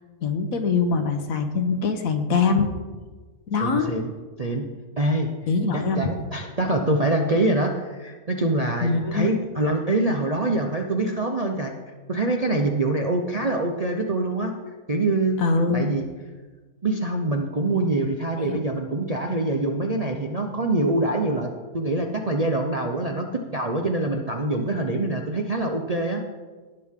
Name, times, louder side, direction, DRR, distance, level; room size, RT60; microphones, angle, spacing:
voice 1, 0.2-2.7 3.5-3.9 5.5-6.1 8.8-9.3 15.4-15.9 18.4-18.6, left 4 dB, 65° left, 7 dB, 1.3 m, -23 dB
voice 2, 3.6-4.1 4.4-4.7 5.0-5.3 5.7-11.7 12.1-14.5 14.9-15.4 15.7-16.0 16.8-26.2, right 2 dB, 40° right, 2 dB, 0.5 m, -25 dB
17.5 x 6.4 x 3.7 m, 1.3 s
omnidirectional pair, 1.6 m